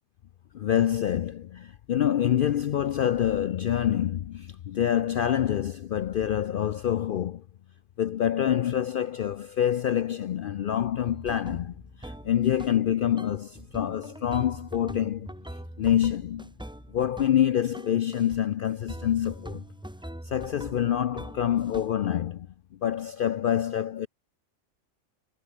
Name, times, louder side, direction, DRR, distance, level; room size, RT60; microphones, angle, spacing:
voice 1, 0.5-7.4 8.0-16.5 16.9-19.6 20.2-22.5 22.8-24.1, left 10 dB, 85° left, 0.4 m, -26 dB
sound 1, 11.0-12.9 13.2-17.4 17.7-18.5 18.9-22.1, right 1 dB, 5° right, 0.8 m, -42 dB
omnidirectional pair, 1.5 m